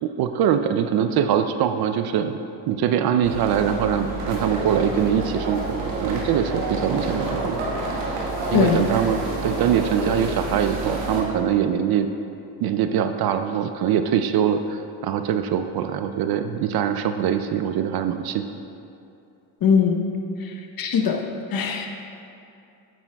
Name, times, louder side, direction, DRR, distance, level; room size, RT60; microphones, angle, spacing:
voice 1, 0.0-2.4 2.7-7.6 8.5-12.1 12.6-18.5, right 9 dB, 50° right, 8 dB, 0.5 m, -23 dB
sound 1, 3.2-11.2, right 2 dB, 75° right, 1.7 m, -28 dB
voice 2, 19.6-20.0 20.4-21.9, left 6 dB, 45° left, 3 dB, 0.9 m, -21 dB
8.7 x 8.7 x 2.3 m, 2.6 s
supercardioid pair, 75°, 50 cm